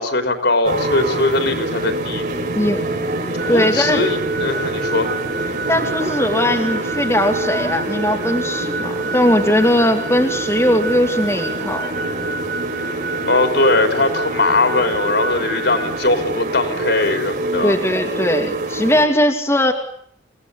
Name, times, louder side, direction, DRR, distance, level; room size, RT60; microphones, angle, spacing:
voice 1, 0.0-2.2 3.4-5.2 13.3-17.8, left 2 dB, 60° left, 6 dB, 4.0 m, -20 dB
sound 1, 0.6-19.1, right 2 dB, 45° right, 5.6 m, -25 dB
voice 2, 2.5-2.9 3.5-4.0 5.7-11.9 17.6-19.7, left 1 dB, 15° left, 1 dB, 2.5 m, -19 dB
sound 2, 3.4-16.1, right 3 dB, 90° right, 6.6 m, -30 dB
28.5 x 18.0 x 10.0 m, 0.66 s
head